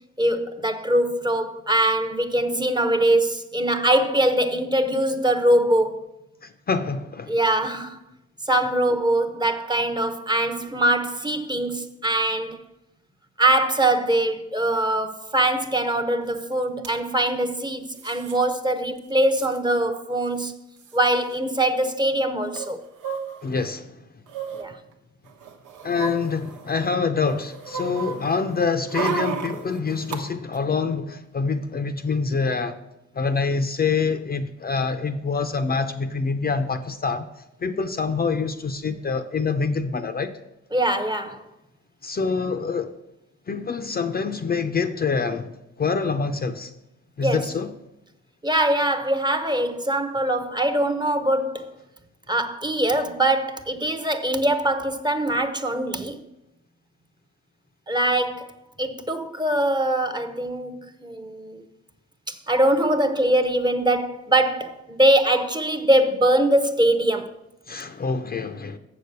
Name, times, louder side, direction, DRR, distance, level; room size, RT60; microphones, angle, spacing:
voice 1, 0.2-6.0 7.3-8.0 8.4-12.6 13.4-20.6 20.9-22.8 24.5-24.8 40.7-41.4 47.2-47.4 48.4-51.8 52.3-56.2 57.9-58.5 58.8-61.6 62.3-67.3, right 1 dB, 15° right, 0.8 m, -22 dB
voice 2, 6.4-7.3 23.4-24.0 25.8-32.8 33.1-37.3 37.6-40.3 42.0-43.0 43.5-45.5 45.8-46.7 47.2-47.7 67.7-68.8, left 4 dB, 30° left, 0.6 m, -26 dB
sound 1, 16.4-16.5 16.6-16.9 17.9-18.4 18.7-18.8 19.0-19.6 20.4-20.5 20.8-21.0 22.5-23.7 24.3-24.6 25.3-26.9 27.3-30.2 30.5-30.6, right 5 dB, 90° right, 1.1 m, -33 dB
7.2 x 6.8 x 6.6 m
cardioid pair, 90°, 30 cm